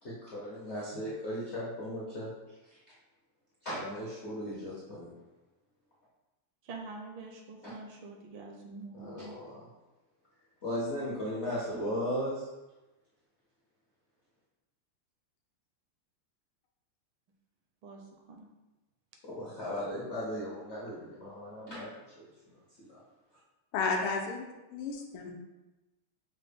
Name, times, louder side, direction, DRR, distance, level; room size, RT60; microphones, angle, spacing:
voice 1, 0.0-2.3 3.6-5.1 8.9-9.6 10.6-12.5 19.2-21.9 22.2-22.3 22.8-22.9, equal, 65° left, -8 dB, 0.7 m, -36 dB
voice 2, 6.6-9.3 17.8-18.5, right 3 dB, 75° right, 2 dB, 1.3 m, -46 dB
voice 3, 23.7-24.4 24.7-25.3, left 4 dB, 80° left, 2 dB, 1.4 m, -32 dB
5.8 x 2.1 x 3.4 m, 1.1 s
omnidirectional pair, 2.4 m